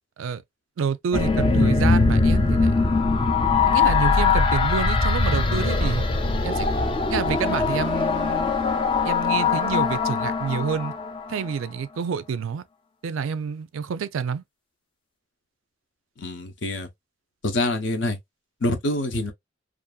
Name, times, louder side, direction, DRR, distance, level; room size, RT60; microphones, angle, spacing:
voice 1, 0.8-2.7 3.7-6.0 6.4-6.7 7.1-8.6 9.0-10.9 11.3-12.6 13.0-14.4, right 6 dB, 80° right, 0.4 m, -28 dB
sound 1, 1.1-11.5, left 4 dB, 25° left, 0.4 m, -21 dB
voice 2, 16.2-16.9 17.4-18.2 18.6-19.3, left 2 dB, 65° left, 0.7 m, -26 dB
2.6 x 2.5 x 2.3 m
head